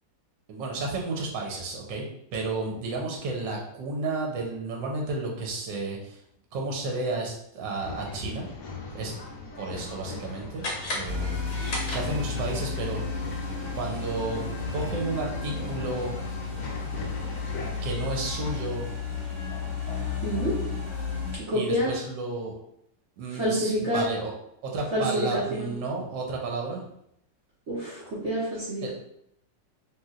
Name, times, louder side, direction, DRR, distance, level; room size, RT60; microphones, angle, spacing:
voice 1, 0.5-6.2 6.5-8.5 8.9-9.1 9.6-11.5 11.9-13.0 13.8-14.4 14.7-16.1 17.8-18.9 21.5-22.5 23.2-24.3 24.6-26.8 28.8-28.9, right 3 dB, 80° right, 0 dB, 1.3 m, -32 dB
Male speech man speaking / Chatter / Rattle, 7.8-17.9, left 3 dB, 85° left, 0.7 m, -40 dB
sound 1, 10.6-12.5, left 1 dB, 55° left, 0.8 m, -35 dB
sound 2, 11.0-21.4, left 4 dB, 30° left, 1.2 m, -33 dB
voice 2, 20.2-20.6 21.5-21.9 23.4-24.0 24.9-25.7 27.7-28.9, equal, 60° right, -7 dB, 0.7 m, -27 dB
3.1 x 2.7 x 2.3 m, 0.75 s
omnidirectional pair, 2.0 m